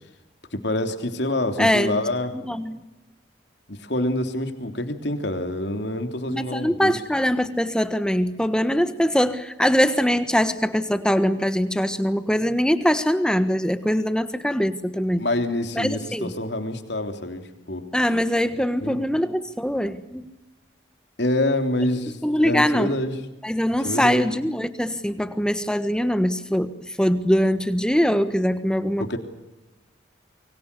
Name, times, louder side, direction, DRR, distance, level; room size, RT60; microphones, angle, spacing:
voice 1, 0.5-2.3 3.7-6.9 15.2-17.8 18.8-19.0 21.2-23.1 23.8-24.3 29.0-29.2, left 1 dB, 60° left, 6 dB, 3.3 m, -26 dB
voice 2, 1.6-2.0 2.3-2.8 6.3-15.2 15.7-16.3 17.9-20.2 22.2-22.9 23.4-29.2, equal, 5° left, 11 dB, 1.4 m, -22 dB
27.5 x 24.0 x 6.9 m, 1.0 s
head